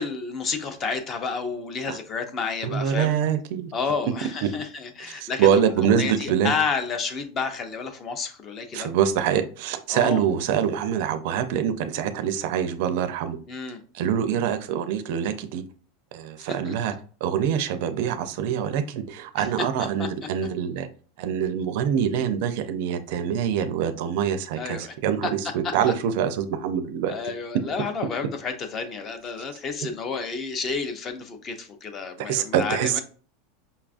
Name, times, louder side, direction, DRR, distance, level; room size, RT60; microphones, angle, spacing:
voice 1, 0.0-3.2 3.7-5.6 6.0-8.9 9.9-10.3 13.5-13.8 16.4-16.7 19.4-19.7 20.0-20.1 24.6-24.9 25.2-25.3 25.6-25.7 27.1-33.0, left 5 dB, 25° left, 0.5 m, -30 dB
voice 2, 2.6-3.7 4.4-4.5 5.1-6.5 8.7-13.4 13.9-15.6 16.1-16.9 17.2-20.9 21.2-27.1 32.2-33.0, right 8 dB, 55° right, 0.4 m, -25 dB
5.4 x 2.3 x 2.4 m
supercardioid pair, 165°, 0 cm